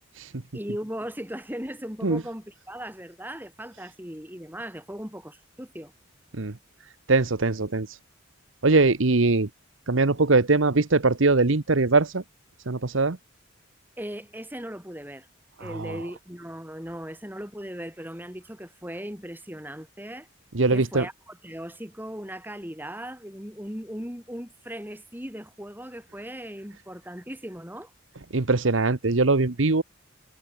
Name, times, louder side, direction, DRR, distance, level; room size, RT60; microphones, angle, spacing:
voice 1, 0.5-5.9 14.0-15.3 15.6-20.3 20.7-27.9, equal, 10° right, 6.7 m, -38 dB
voice 2, 7.1-7.9 8.6-9.5 9.9-12.2 12.7-13.2 15.6-16.0 20.5-21.0 28.3-29.8, right 3 dB, 75° right, 1.1 m, -21 dB
head